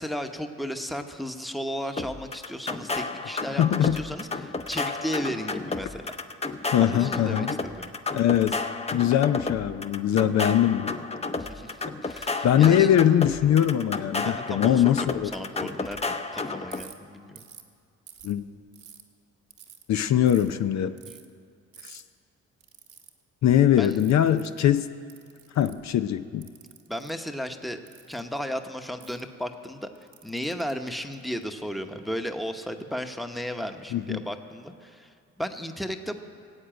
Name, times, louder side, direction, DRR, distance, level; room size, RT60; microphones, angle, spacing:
voice 1, 0.0-6.0 6.8-7.9 11.4-12.9 14.2-15.1 15.3-17.5 23.8-24.0 26.9-27.8 28.1-29.9 30.2-36.2, equal, ahead, 6 dB, 1.0 m, -34 dB
sound 1, 2.0-16.8, left 3 dB, 20° left, 0.7 m, -32 dB
voice 2, 3.6-4.0 6.7-7.5 8.1-8.6 8.9-11.0 12.4-15.3 18.2-18.5 19.9-21.0 21.8-22.0 23.4-24.9 25.6-26.5 33.9-34.2, left 10 dB, 65° left, 10 dB, 0.6 m, -22 dB
Ratchet pawl, 16.7-16.9 17.4-17.7 18.1-19.0 19.5-19.8 20.3-20.5 21.0-21.2 21.7-22.0 22.6-23.1 23.8-24.5 25.1-25.9 26.4-27.1 27.9-28.2 29.0-29.2 29.9-31.4, right 9 dB, 75° right, 1.4 m, -49 dB
17.0 x 8.1 x 8.9 m, 2.3 s
cardioid pair, 90°, 30 cm